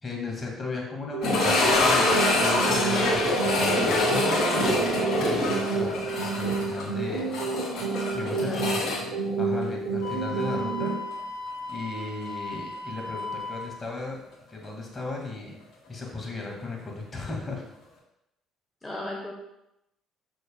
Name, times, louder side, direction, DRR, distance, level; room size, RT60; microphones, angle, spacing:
voice 1, 0.0-7.3 8.1-8.8 9.4-10.9 11.6-14.2 14.5-15.6 15.9-17.6, left 3 dB, 30° left, -1 dB, 2.2 m, -36 dB
sound 1, 1.1-11.1, right 4 dB, 90° right, 0.8 m, -30 dB
sound 2, 1.2-10.1 10.4-10.5 11.1-11.2 13.8-13.9, left 2 dB, 60° left, 2.4 m, -25 dB
voice 2, 8.3-8.9 18.8-19.3, left 2 dB, 15° left, -2 dB, 1.1 m, -35 dB
Wind instrument woodwind instrument, 10.0-13.7, left 3 dB, 80° left, 2.1 m, -36 dB
6.6 x 6.4 x 2.3 m, 0.85 s
supercardioid pair, 65°, 0 cm